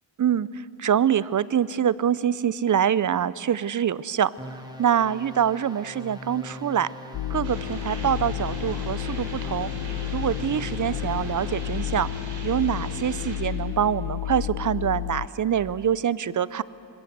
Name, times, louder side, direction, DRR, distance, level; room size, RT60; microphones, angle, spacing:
voice 1, 0.2-4.3 4.8-6.9 7.3-9.7 10.1-12.1 12.4-16.6, right 9 dB, 45° right, 19 dB, 0.7 m, -25 dB
sound 1, 4.4-11.9, left 1 dB, 10° right, 2.6 m, -42 dB
sound 2, 7.1-15.3, left 13 dB, 70° left, 0.7 m, -31 dB
sound 3, 7.4-13.4, right 2 dB, 90° right, 4.8 m, -39 dB
25.5 x 20.5 x 8.0 m, 2.8 s
cardioid pair, 75°, 44 cm